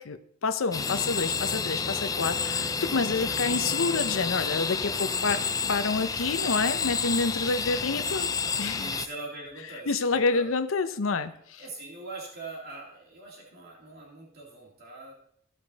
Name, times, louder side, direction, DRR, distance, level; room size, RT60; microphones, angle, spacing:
voice 1, 0.0-5.4 5.7-8.8 9.9-11.6, left 4 dB, 85° left, 11 dB, 0.7 m, -28 dB
sound 1, 0.7-9.1, left 5 dB, 20° left, 0.4 m, -29 dB
voice 2, 2.0-2.4 5.2-5.5 7.3-7.6 8.7-10.5 11.1-15.1, right 3 dB, 55° right, -2 dB, 2.5 m, -43 dB
15.0 x 5.1 x 4.1 m, 0.67 s
head